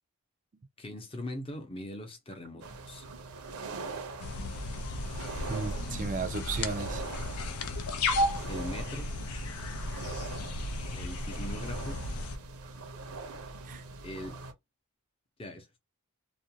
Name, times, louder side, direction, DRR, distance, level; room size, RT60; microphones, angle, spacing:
voice 1, 0.8-3.0 8.5-9.1 10.9-12.0 14.0-14.4 15.4-15.7, left 1 dB, 25° left, 0.6 m, -41 dB
sound 1, 2.6-14.5, right 3 dB, 80° right, 0.6 m, -43 dB
sound 2, 4.2-12.4, left 2 dB, 85° left, 0.5 m, -34 dB
voice 2, 5.3-7.0 12.6-12.7 13.6-13.8, right 4 dB, 35° right, 0.4 m, -35 dB
2.5 x 2.2 x 2.8 m
head